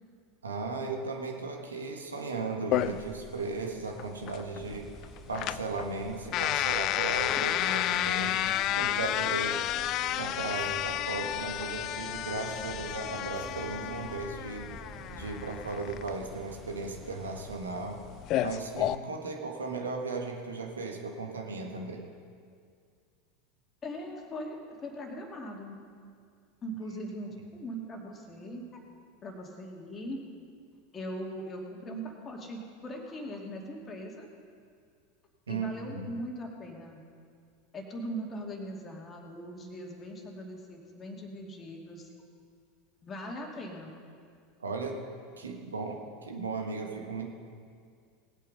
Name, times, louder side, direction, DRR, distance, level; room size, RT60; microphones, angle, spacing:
voice 1, 0.4-4.9 5.3-8.4 8.8-9.6 10.2-14.7 15.1-18.0 18.4-22.0 35.5-36.2 44.6-45.0 45.4-47.3, right 3 dB, 80° right, 2 dB, 1.5 m, -36 dB
sound 1, 2.7-18.9, left 12 dB, 45° left, 0.4 m, -32 dB
sound 2, 4.5-17.6, right 4 dB, 20° right, 1.2 m, -52 dB
sound 3, 8.2-15.6, right 2 dB, ahead, 4.4 m, -50 dB
voice 2, 23.8-25.8 26.6-28.8 29.2-30.2 30.9-34.3 35.5-37.0 37.7-42.1 43.0-43.9, equal, 25° left, 1 dB, 2.4 m, -40 dB
19.5 x 8.4 x 5.4 m, 2.2 s
figure-of-eight pair, 80°, 0 cm